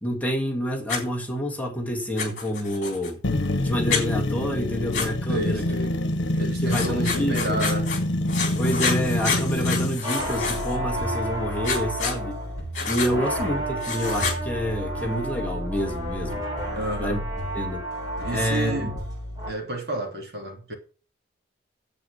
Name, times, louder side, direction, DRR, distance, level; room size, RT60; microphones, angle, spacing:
voice 1, 0.0-3.2 3.6-5.6 6.0-6.1 6.6-7.7 8.6-12.4 12.8-16.4 17.0-17.2 17.5-17.8 18.3-18.9, equal, 10° left, 1.8 m, -28 dB
Writing, 0.9-1.0 2.2-3.1 3.9-4.0 4.9-5.1 6.7-8.0 8.3-10.8 11.6-12.2 12.7-13.1 13.8-14.4, left 5 dB, 40° left, 3.8 m, -28 dB
sound 1, 3.2-10.0, left 1 dB, 70° left, 1.2 m, -26 dB
voice 2, 5.3-5.9 6.3-7.9 13.1-13.7 16.7-17.2 18.2-19.0 19.5-20.7, right 1 dB, 55° right, 3.0 m, -31 dB
sound 2, 10.0-19.5, right 1 dB, 20° right, 7.8 m, -31 dB
8.6 x 8.1 x 6.9 m
head